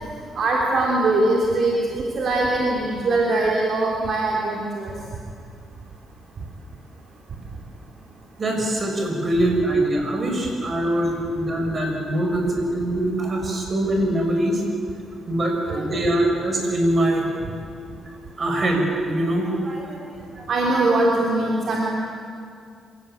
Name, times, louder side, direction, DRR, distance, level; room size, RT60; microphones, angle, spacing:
voice 1, 0.4-4.9 20.5-21.9, right 2 dB, 55° right, -2 dB, 3.5 m, -21 dB
voice 2, 8.4-14.6 15.3-17.2 18.4-20.0 20.3-20.4, right 1 dB, 35° right, 2 dB, 6.5 m, -23 dB
27.0 x 17.5 x 9.0 m, 2.4 s
cardioid pair, 90°, 0 cm